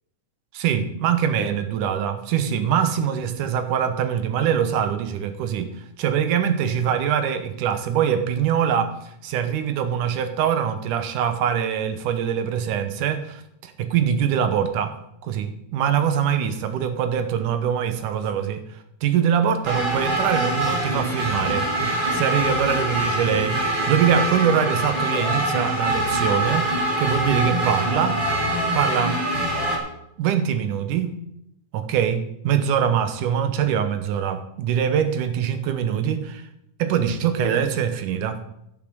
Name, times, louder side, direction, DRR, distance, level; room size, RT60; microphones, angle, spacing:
voice 1, 0.5-5.7 6.0-15.0 15.2-21.7 22.1-28.2 28.7-29.2 30.2-31.2 31.7-36.5 36.8-38.4, right 8 dB, 85° right, 8 dB, 2.5 m, -23 dB
sound 1, 19.6-29.8, right 1 dB, 20° right, 1.9 m, -24 dB
11.0 x 7.1 x 6.5 m, 0.79 s
omnidirectional pair, 3.6 m